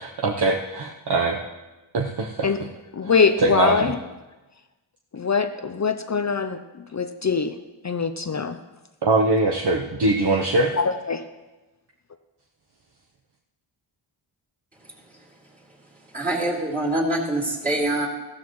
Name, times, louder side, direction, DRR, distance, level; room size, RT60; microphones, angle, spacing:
voice 1, 0.0-1.4 1.9-2.5 3.0-3.9 9.0-10.7, right 2 dB, 50° right, 1 dB, 1.0 m, -22 dB
voice 2, 2.9-3.9 5.1-7.6 7.8-8.6 10.8-11.2, left 5 dB, 35° left, 9 dB, 0.5 m, -23 dB
voice 3, 16.1-18.1, right 1 dB, 15° right, -8 dB, 2.9 m, -24 dB
14.5 x 13.0 x 3.1 m, 1.1 s
wide cardioid pair, 80°, 50 cm